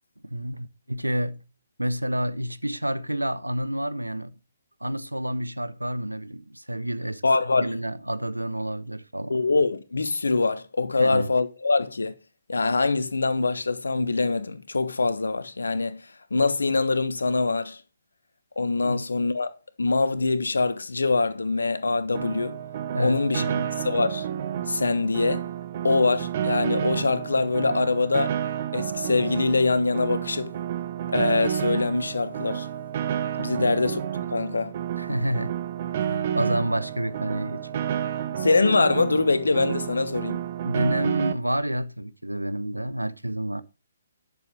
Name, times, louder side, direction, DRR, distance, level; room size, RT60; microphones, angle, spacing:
voice 1, 0.2-1.4 1.8-4.4 4.8-7.2 7.6-9.4 11.0-11.3 18.8-19.0 22.9-23.7 33.5-33.8 35.0-35.6 35.9-37.8 40.6-43.6, right 1 dB, 90° right, 0.9 m, -29 dB
voice 2, 7.2-7.7 9.3-12.1 12.5-16.0 16.3-17.8 18.6-19.5 19.8-22.6 23.0-23.4 23.8-24.2 24.7-25.4 25.8-28.4 28.7-30.5 31.1-32.7 33.4-34.0 34.3-34.7 38.4-40.4, left 3 dB, 70° left, 1.2 m, -24 dB
Piano, 22.1-41.3, right 9 dB, 40° right, 0.9 m, -30 dB
11.0 x 6.9 x 5.1 m
figure-of-eight pair, 135°, 0 cm